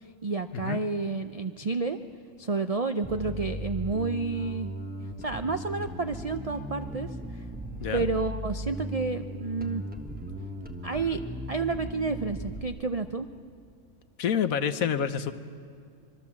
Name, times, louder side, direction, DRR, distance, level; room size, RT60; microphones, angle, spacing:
voice 1, 0.2-2.0 2.4-4.7 5.2-7.5 7.9-9.9 10.8-11.2 11.5-13.3, right 3 dB, 65° right, 9 dB, 0.3 m, -30 dB
Bass guitar, 3.0-12.6, right 1 dB, 5° right, 1.0 m, -37 dB
voice 2, 14.2-15.3, left 8 dB, 70° left, 11 dB, 1.3 m, -28 dB
25.0 x 23.5 x 7.3 m, 2.3 s
omnidirectional pair, 1.6 m